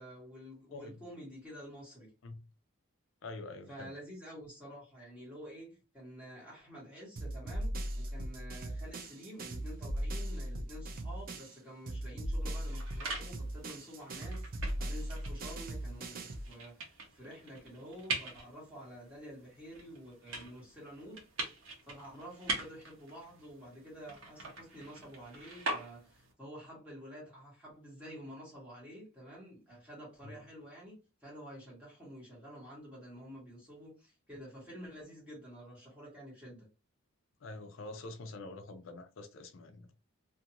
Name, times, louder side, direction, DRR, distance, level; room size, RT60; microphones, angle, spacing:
voice 1, 0.0-2.1 3.7-21.2 21.8-36.7, equal, 5° right, 1.4 m, -49 dB
voice 2, 3.2-3.9 30.2-30.4 37.4-39.9, left 2 dB, 60° left, 0.4 m, -46 dB
sound 1, 7.2-11.6 11.9-16.5, right 1 dB, 40° right, 0.4 m, -38 dB
sound 2, 12.4-26.3, right 2 dB, 60° right, 0.9 m, -43 dB
2.5 x 2.5 x 2.8 m
head